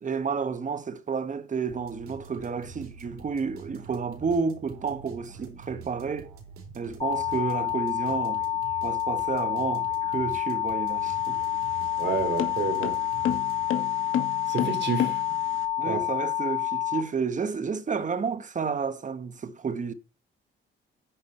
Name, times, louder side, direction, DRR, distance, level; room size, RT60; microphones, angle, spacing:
voice 1, 0.0-6.3 6.7-8.4 8.8-11.4 15.8-19.9, right 5 dB, 35° right, 1.2 m, -31 dB
sound 1, 1.7-13.9, right 5 dB, 85° right, 4.6 m, -46 dB
sound 2, 7.0-17.0, left 12 dB, 25° left, 2.2 m, -28 dB
sound 3, 10.9-15.6, left 9 dB, 75° left, 1.8 m, -32 dB
voice 2, 12.0-13.0 14.5-15.2 15.8-16.0, right 5 dB, 55° right, 3.3 m, -29 dB
10.0 x 4.9 x 8.0 m
cardioid pair, 90°, 21 cm